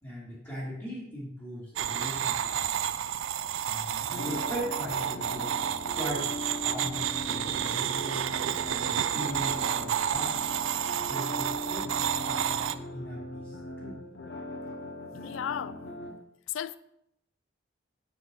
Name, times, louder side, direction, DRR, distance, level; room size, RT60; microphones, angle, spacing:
voice 1, 0.0-3.0 3.6-5.5 5.9-8.3 8.7-10.5 11.1-11.9 12.2-12.6 12.9-14.0, equal, 10° left, 2.8 m, -39 dB
sound 1, 1.8-12.7, right 9 dB, 80° right, 0.4 m, -30 dB
sound 2, 4.1-16.1, left 1 dB, 60° left, 0.8 m, -40 dB
voice 2, 15.2-15.8 16.5-16.8, left 9 dB, 80° left, 0.3 m, -34 dB
8.7 x 4.7 x 3.9 m
head